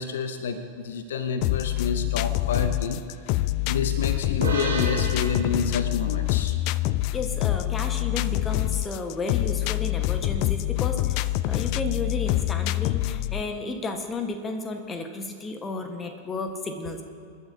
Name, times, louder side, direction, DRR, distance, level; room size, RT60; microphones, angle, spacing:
voice 1, 0.0-3.0 3.7-6.6, left 5 dB, 60° left, 9 dB, 0.7 m, -29 dB
sound 1, 1.4-13.4, left 17 dB, 45° left, 0.3 m, -26 dB
sound 2, 4.4-7.9, right 3 dB, 75° right, 2.4 m, -35 dB
voice 2, 7.1-17.0, left 3 dB, 20° left, 5 dB, 1.3 m, -33 dB
26.5 x 11.0 x 2.7 m, 2.6 s
figure-of-eight pair, 90°, 0 cm